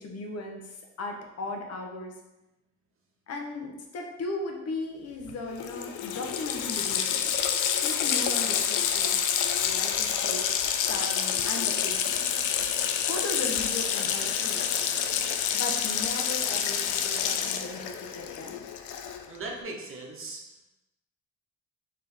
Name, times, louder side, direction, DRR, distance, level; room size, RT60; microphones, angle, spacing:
voice 1, 0.0-2.1 3.3-7.4 7.8-9.3 9.6-10.5 10.9-12.3 13.0-14.7 15.5-18.6, left 2 dB, 55° left, 2 dB, 0.9 m, -37 dB
Water tap faucet, 5.3-5.4 5.6-19.4, left 8 dB, 80° left, 0.5 m, -28 dB
voice 2, 19.3-20.4, right 3 dB, 45° right, 0 dB, 1.0 m, -38 dB
4.4 x 3.2 x 3.4 m, 0.97 s
cardioid pair, 90°, 30 cm